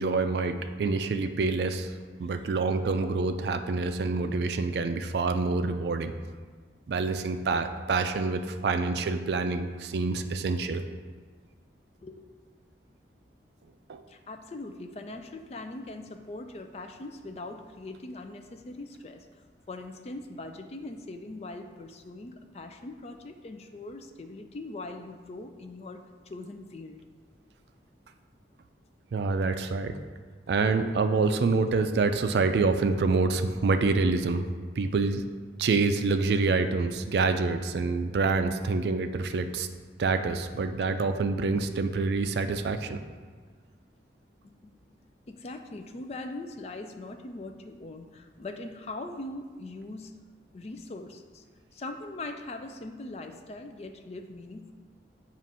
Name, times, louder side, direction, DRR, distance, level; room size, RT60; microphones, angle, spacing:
voice 1, 0.0-1.9 2.2-6.1 6.9-10.8 13.9-14.0 29.1-30.0 30.5-34.5 34.8-35.2 35.6-39.7 40.0-43.0, right 4 dB, 65° right, 8 dB, 0.4 m, -27 dB
voice 2, 14.1-19.3 19.7-27.0 44.4-44.7 45.3-50.1 50.5-51.4 51.7-54.7, left 2 dB, 35° left, 6 dB, 0.4 m, -41 dB
7.4 x 2.5 x 5.4 m, 1.5 s
head